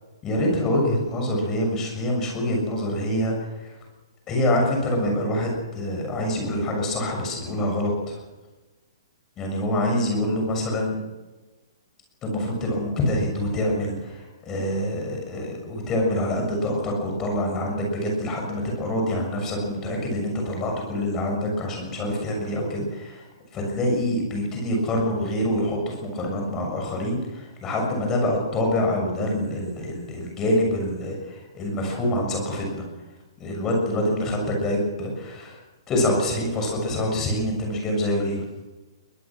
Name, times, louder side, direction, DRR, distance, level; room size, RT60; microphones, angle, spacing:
voice 1, 0.2-3.7 4.3-8.2 9.4-10.9 12.2-23.2 23.5-32.8 33.4-35.6 35.9-38.4, left 1 dB, 15° left, 1 dB, 6.8 m, -26 dB
22.0 x 22.0 x 6.2 m, 1.2 s
hypercardioid pair, 170°, 3 cm